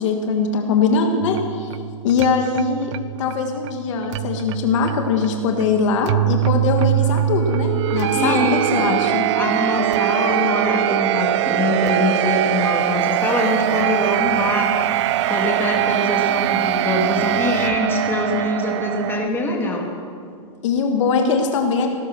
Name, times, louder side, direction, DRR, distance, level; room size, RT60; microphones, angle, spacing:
voice 1, 0.0-1.7 2.0-2.9 3.2-9.3 20.6-21.9, left 5 dB, 65° left, 4 dB, 1.7 m, -21 dB
sound 1, 1.2-19.3, right 13 dB, 60° right, 0.5 m, -22 dB
voice 2, 8.1-9.0 9.3-19.9, left 2 dB, 15° left, 0 dB, 2.5 m, -23 dB
17.5 x 10.5 x 6.2 m, 2.2 s
hypercardioid pair, 140°, 17 cm